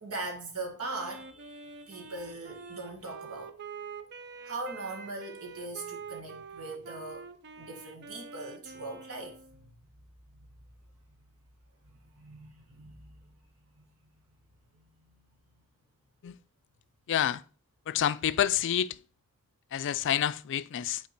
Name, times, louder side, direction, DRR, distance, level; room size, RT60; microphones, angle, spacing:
voice 1, 0.0-3.5 4.4-7.3 7.6-9.7 10.3-10.5 12.1-13.1 13.8-13.9, right 2 dB, 85° right, 1.7 m, -40 dB
Wind instrument woodwind instrument, 0.8-9.7, right 5 dB, 50° right, 0.5 m, -46 dB
voice 2, 17.1-17.4 17.9-19.0 19.7-21.0, left 10 dB, 55° left, 0.4 m, -28 dB
5.9 x 4.5 x 4.3 m
head